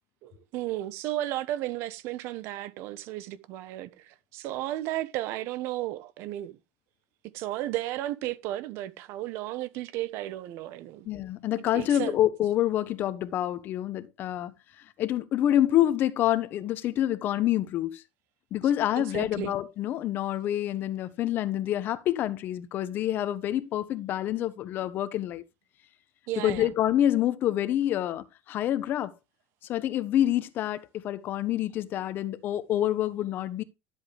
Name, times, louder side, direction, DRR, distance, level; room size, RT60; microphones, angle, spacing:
voice 1, 0.2-6.6 7.3-11.1 11.7-12.2 19.0-19.5 26.3-26.7, right 14 dB, 55° right, 1.2 m, -34 dB
voice 2, 11.1-14.5 15.0-18.0 18.5-25.4 26.4-29.1 29.7-33.6, left 12 dB, 40° left, 1.2 m, -27 dB
12.0 x 7.9 x 3.4 m
supercardioid pair, 135°, 5 cm